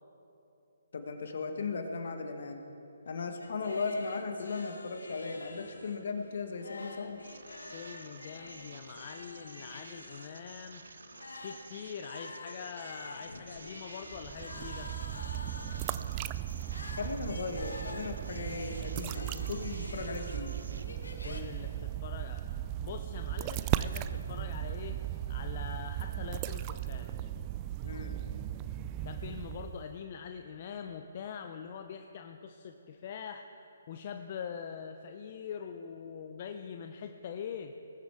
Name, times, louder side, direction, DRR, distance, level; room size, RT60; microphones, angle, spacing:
voice 1, 0.9-2.6 3.0-7.2 16.9-20.6 27.8-28.2, left 4 dB, 60° left, 5 dB, 1.3 m, -37 dB
sound 1, 3.4-21.4, left 2 dB, 90° left, 1.3 m, -48 dB
sound 2, 7.2-20.9, right 4 dB, 75° right, 0.7 m, -52 dB
voice 2, 7.7-10.8 11.4-14.9 21.2-22.4 22.8-25.0 25.3-27.1 29.0-33.5 33.9-37.7, left 7 dB, 40° left, 6 dB, 0.5 m, -43 dB
sound 3, 14.1-30.0, right 13 dB, 25° right, 0.3 m, -37 dB
19.5 x 7.2 x 4.8 m, 3.0 s
hypercardioid pair, 145°, 0 cm